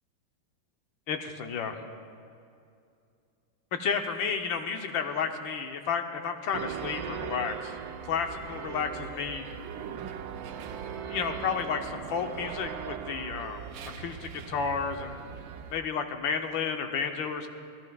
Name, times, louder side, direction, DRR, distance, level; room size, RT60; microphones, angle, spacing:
voice 1, 1.1-1.8 3.7-7.7 8.0-9.5 11.1-13.7 14.0-15.2 15.7-17.5, left 6 dB, 75° left, 5 dB, 1.6 m, -32 dB
sound 1, 6.5-15.8, right 8 dB, 85° right, 1.4 m, -39 dB
26.0 x 15.5 x 2.3 m, 2.5 s
omnidirectional pair, 2.1 m